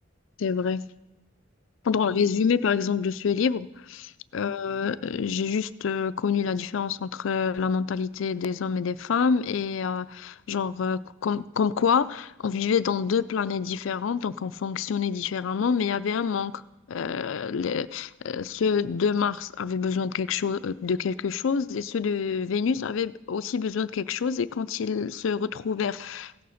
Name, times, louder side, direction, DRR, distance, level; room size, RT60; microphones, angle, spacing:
voice 1, 0.4-0.9 1.9-16.6 16.9-26.4, left 6 dB, 75° left, 0.4 m, -27 dB
16.0 x 6.8 x 6.4 m
head